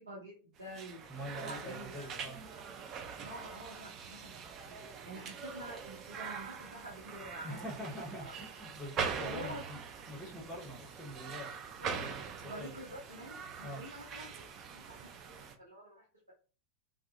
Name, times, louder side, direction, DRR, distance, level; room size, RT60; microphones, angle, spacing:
voice 1, 0.0-1.0 1.4-2.3 3.2-4.7 5.0-7.7 8.2-8.4 9.2-9.8 11.8-12.1 12.4-16.3, right 1 dB, 80° right, -6 dB, 0.7 m, -48 dB
sound 1, 0.6-15.6, right 6 dB, 30° right, 0.4 m, -43 dB
voice 2, 1.1-2.4 7.4-9.8 10.1-12.7 13.6-13.8, equal, 5° right, -6 dB, 0.8 m, -45 dB
2.3 x 2.0 x 2.6 m, 0.38 s
figure-of-eight pair, 90°, 0 cm